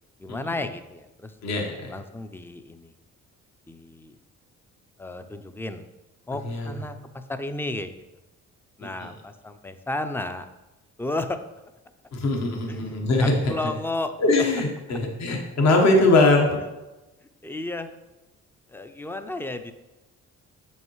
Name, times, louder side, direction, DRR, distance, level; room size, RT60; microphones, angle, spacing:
voice 1, 0.2-1.3 1.9-2.9 3.7-4.1 5.0-5.9 6.3-7.9 8.8-10.5 11.0-11.4 12.7-14.1 17.4-17.9 18.7-19.7, left 2 dB, 5° left, 9 dB, 0.4 m, -33 dB
voice 2, 1.4-1.9 6.4-6.7 9.0-9.1 12.1-13.5 14.2-16.6, left 2 dB, 65° left, 1 dB, 1.3 m, -21 dB
7.1 x 5.5 x 3.1 m, 1.0 s
cardioid pair, 90°, 30 cm